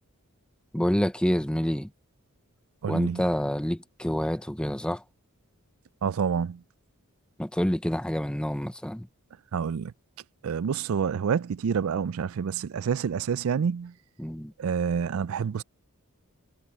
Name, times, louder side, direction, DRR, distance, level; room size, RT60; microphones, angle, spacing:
voice 1, 0.7-1.9 2.9-5.0 7.4-9.1 14.2-14.5, equal, 5° left, 0.7 m, -27 dB
voice 2, 2.8-3.3 6.0-6.6 9.5-9.9 10.4-13.9 14.6-15.6, right 7 dB, 65° right, 0.4 m, -28 dB
head